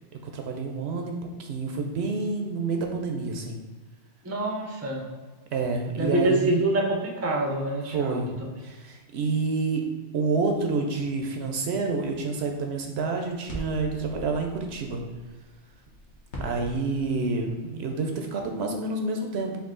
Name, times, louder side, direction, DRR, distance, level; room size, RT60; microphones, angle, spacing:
voice 1, 0.2-3.6 5.5-6.6 7.9-9.8 10.1-15.0 16.4-19.6, right 3 dB, 70° right, 3 dB, 0.8 m, -28 dB
voice 2, 4.2-5.0 6.0-8.5, right 1 dB, 20° right, 0 dB, 0.4 m, -26 dB
sound 1, 12.8-17.6, equal, 70° left, 1.2 m, -43 dB
4.6 x 2.6 x 3.7 m, 1.4 s
omnidirectional pair, 1.2 m